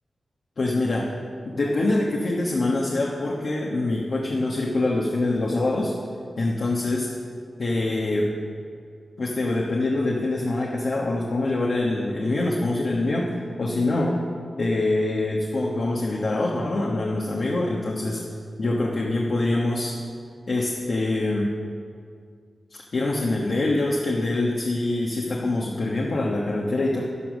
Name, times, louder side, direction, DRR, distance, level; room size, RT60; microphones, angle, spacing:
voice 1, 0.6-1.1 1.4-5.9 6.4-7.1 7.6-8.3 9.2-13.3 13.6-14.2 14.6-18.2 18.6-20.0 20.5-21.5 22.7-27.0, left 2 dB, 55° left, -2 dB, 1.3 m, -24 dB
11.5 x 11.5 x 6.3 m, 2.2 s
wide cardioid pair, 135°, 0 cm